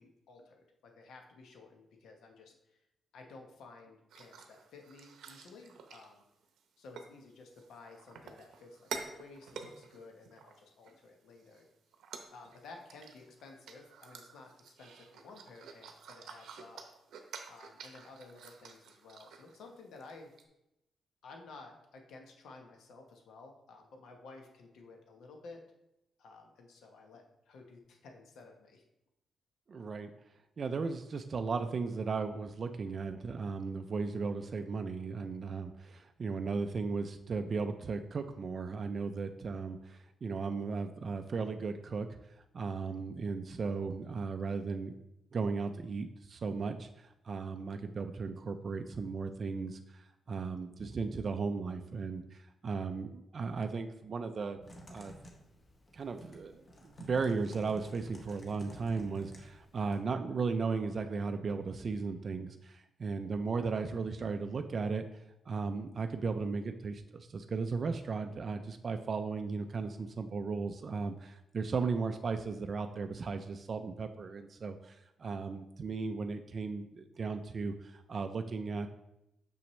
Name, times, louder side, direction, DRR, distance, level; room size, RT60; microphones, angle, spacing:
voice 1, 0.0-2.8 3.1-6.2 6.8-11.7 12.3-16.8 17.5-20.3 21.2-25.6 26.2-28.8, left 3 dB, 80° left, 2 dB, 1.0 m, -54 dB
sound 1, 4.1-6.6 7.0-7.1 7.5-10.9 11.4-11.6 11.9-19.7 20.0-20.1 20.4-20.5, right 6 dB, 85° right, 0.7 m, -49 dB
voice 2, 29.7-30.1 30.6-42.2 42.5-44.9 45.3-54.6 54.9-55.1 55.9-65.1 65.5-78.9, right 4 dB, 35° right, 7 dB, 0.3 m, -36 dB
Typing, 54.6-60.0, equal, 25° left, 0.9 m, -52 dB
6.1 x 5.8 x 3.1 m, 0.87 s
wide cardioid pair, 160°, 0 cm